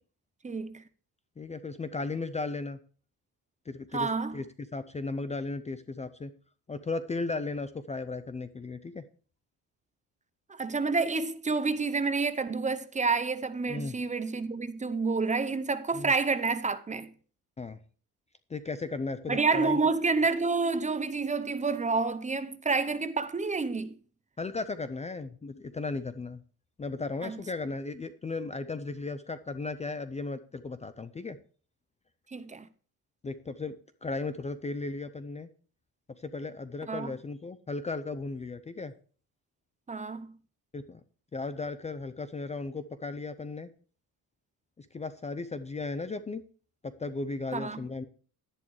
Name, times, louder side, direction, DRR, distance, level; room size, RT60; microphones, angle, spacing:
voice 1, 0.4-0.8 3.9-4.4 10.5-17.1 19.3-23.9 27.2-27.4 32.3-32.7 36.9-37.1 39.9-40.3 47.5-47.8, right 4 dB, 20° right, 0.7 m, -29 dB
voice 2, 1.4-2.8 3.7-4.4 4.7-6.3 6.7-9.0 13.7-13.9 15.9-16.1 17.6-17.8 18.5-19.8 24.4-26.4 26.8-31.4 33.2-33.7 34.0-35.5 36.2-38.9 40.7-41.0 41.3-43.7 44.8-46.4 46.8-48.0, left 3 dB, 20° left, 0.5 m, -36 dB
11.0 x 10.5 x 3.2 m
cardioid pair, 125°, 37 cm